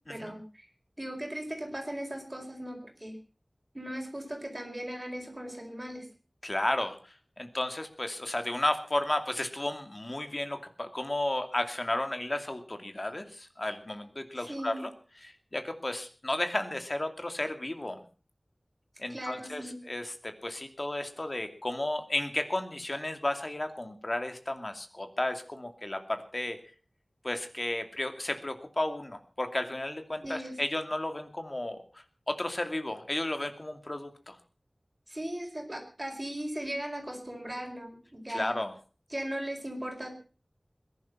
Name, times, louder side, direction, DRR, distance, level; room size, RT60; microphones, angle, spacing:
voice 1, 0.1-0.7 1.0-3.2 3.7-6.1 14.4-14.8 19.1-19.8 30.2-30.6 35.1-38.5 39.1-40.1, right 1 dB, 30° right, 2 dB, 4.5 m, -38 dB
voice 2, 6.4-14.9 15.2-18.0 19.0-26.6 27.2-34.4 38.3-38.7, left 1 dB, 45° left, 7 dB, 2.6 m, -33 dB
21.5 x 11.0 x 5.7 m, 0.38 s
wide cardioid pair, 50°, 0 cm